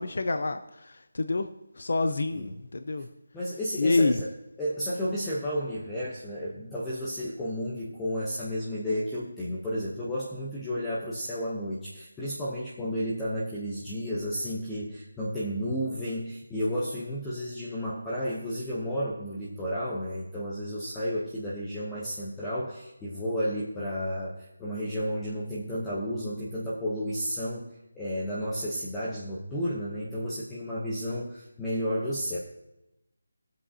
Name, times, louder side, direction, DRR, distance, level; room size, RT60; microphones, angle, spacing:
voice 1, 0.0-1.5 1.8-3.1 3.8-4.2, left 3 dB, 55° left, 9 dB, 0.6 m, -27 dB
voice 2, 3.3-4.3 4.6-32.4, equal, 5° left, -7 dB, 0.8 m, -32 dB
20.5 x 7.6 x 2.8 m, 0.92 s
figure-of-eight pair, 175°, 0 cm